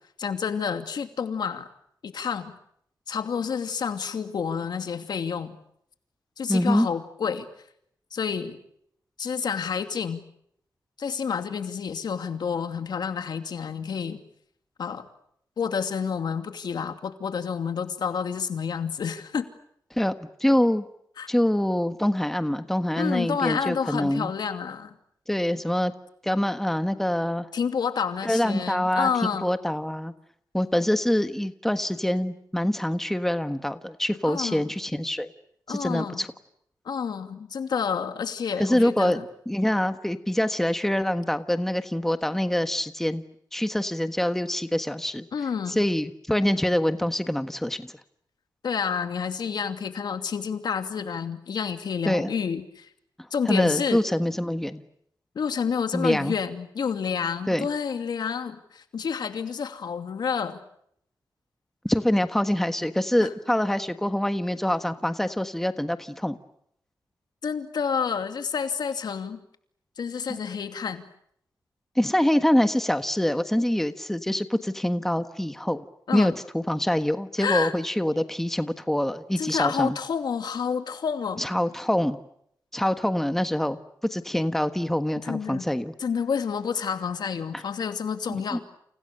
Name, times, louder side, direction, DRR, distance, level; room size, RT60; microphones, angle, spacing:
voice 1, 0.2-1.7 2.0-2.5 3.1-5.6 6.4-7.5 8.1-8.6 9.2-10.2 11.0-14.2 14.8-15.1 15.6-19.5 21.2-21.3 23.0-24.9 27.5-29.5 34.3-34.6 35.7-36.3 36.8-39.2 45.3-45.8 48.6-52.9 53.3-54.0 55.3-60.6 63.2-63.3 67.4-69.4 70.0-71.0 76.1-76.3 77.4-77.7 79.4-81.4 85.2-85.6 86.0-88.6, left 6 dB, 75° left, 7 dB, 2.6 m, -29 dB
voice 2, 6.5-6.9 19.9-20.1 20.4-20.9 21.3-24.3 25.3-25.9 26.2-27.5 28.2-29.1 29.4-30.1 30.5-35.3 35.7-36.3 38.6-43.2 43.5-45.3 45.7-47.9 52.0-52.3 53.5-54.8 55.9-56.3 57.5-57.7 61.8-66.4 70.3-70.4 72.0-75.8 76.1-80.0 81.4-82.2 82.7-83.8 84.1-85.9 88.3-88.6, left 1 dB, 5° left, 9 dB, 1.4 m, -25 dB
30.0 x 29.0 x 6.8 m, 0.72 s
wide cardioid pair, 110°, 7 cm